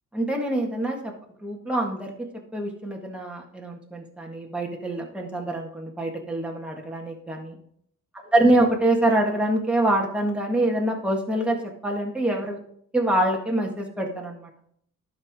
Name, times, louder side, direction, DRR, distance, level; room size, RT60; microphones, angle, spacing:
voice 1, 0.1-1.1 1.4-7.6 8.3-12.6 12.9-14.5, right 1 dB, 5° right, 0 dB, 1.7 m, -25 dB
12.0 x 5.8 x 3.6 m, 0.66 s
cardioid pair, 125°, 33 cm